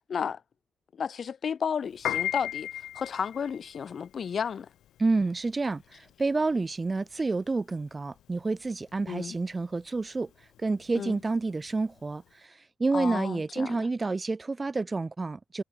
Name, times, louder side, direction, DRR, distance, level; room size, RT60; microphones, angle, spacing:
voice 1, 0.1-0.4 0.9-4.7 9.1-9.3 10.9-11.2 12.9-13.9, left 7 dB, 45° left, 2.8 m, -33 dB
Piano, 1.9-12.3, left 12 dB, 85° left, 2.2 m, -37 dB
voice 2, 5.0-10.3 10.6-12.5 12.8-15.6, right 3 dB, 20° right, 0.8 m, -29 dB
cardioid pair, 125°, 0 cm